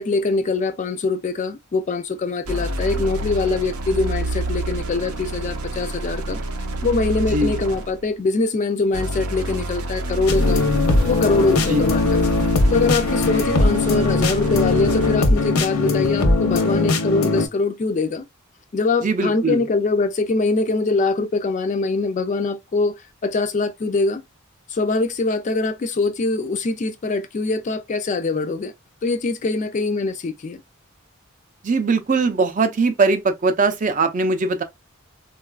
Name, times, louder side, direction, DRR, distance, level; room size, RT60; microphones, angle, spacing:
voice 1, 0.0-6.4 6.8-10.6 11.0-12.3 12.7-18.3 18.7-24.2 24.7-28.7 29.0-30.6, left 3 dB, 35° left, 0.3 m, -23 dB
sound 1, 2.4-8.1 8.9-15.3, right 2 dB, 85° right, 0.6 m, -28 dB
sound 2, 10.3-17.5, left 3 dB, 85° left, 0.7 m, -20 dB
voice 2, 19.0-19.6 31.6-34.6, right 3 dB, 35° right, 0.4 m, -20 dB
3.7 x 2.3 x 2.3 m
head